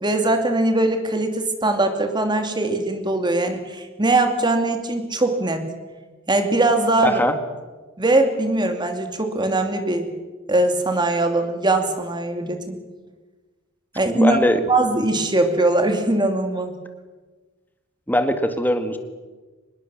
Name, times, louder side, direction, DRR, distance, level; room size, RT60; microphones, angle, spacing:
voice 1, 0.0-5.7 6.3-7.2 8.0-10.1 10.5-12.8 13.9-14.4 14.7-16.8, right 2 dB, 20° right, 5 dB, 2.6 m, -21 dB
voice 2, 7.0-7.4 14.1-14.6 18.1-19.0, equal, 10° left, 7 dB, 1.9 m, -20 dB
25.5 x 20.5 x 7.2 m, 1.3 s
head